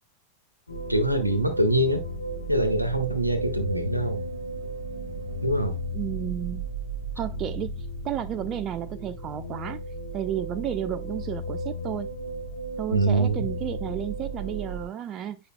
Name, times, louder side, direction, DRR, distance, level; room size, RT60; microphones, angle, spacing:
sound 1, 0.7-14.9, right 1 dB, 80° left, 2.1 m, -34 dB
voice 1, 0.9-2.1 2.5-4.2 5.4-5.8 12.9-13.4, right 1 dB, 90° right, 1.3 m, -24 dB
voice 2, 5.9-6.6 7.2-9.8 10.1-12.1 12.8-15.4, right 10 dB, 30° right, 0.5 m, -32 dB
8.6 x 5.6 x 2.2 m
figure-of-eight pair, 90°, 0 cm